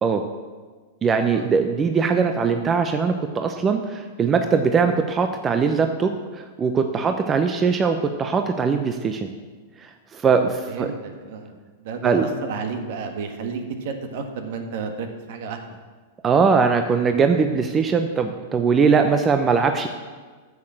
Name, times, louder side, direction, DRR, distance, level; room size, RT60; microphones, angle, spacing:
voice 1, 1.0-9.3 9.8-10.9 12.0-12.2 16.2-19.9, right 5 dB, 25° right, 6 dB, 0.7 m, -21 dB
voice 2, 10.3-15.8, right 5 dB, 60° right, 5 dB, 1.6 m, -32 dB
9.6 x 6.8 x 7.5 m, 1.4 s
hypercardioid pair, 110°, 0 cm